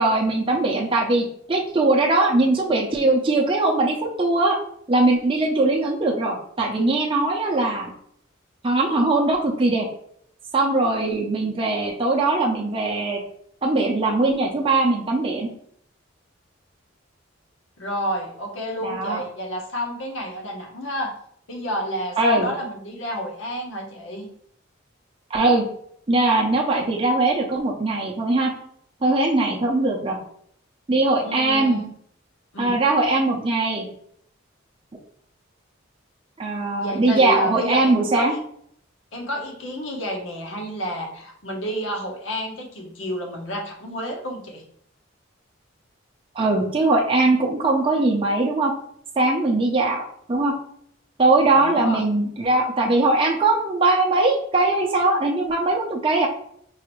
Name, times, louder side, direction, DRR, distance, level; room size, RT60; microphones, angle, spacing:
voice 1, 0.0-4.6 4.9-7.9 8.6-9.9 10.5-13.2 13.6-15.5 18.8-19.2 22.2-22.5 25.3-25.7 26.1-28.5 29.0-30.2 30.9-31.8 32.6-33.9 36.4-38.3 46.3-48.7 49.2-50.0 50.3-50.6 51.2-56.3, right 2 dB, 25° right, -1 dB, 0.5 m, -20 dB
voice 2, 17.8-21.1 21.5-24.3 31.2-31.9 32.5-32.8 36.8-38.4 39.1-44.6 51.5-52.0, equal, 70° left, 1 dB, 0.9 m, -30 dB
4.7 x 2.5 x 3.0 m, 0.66 s
head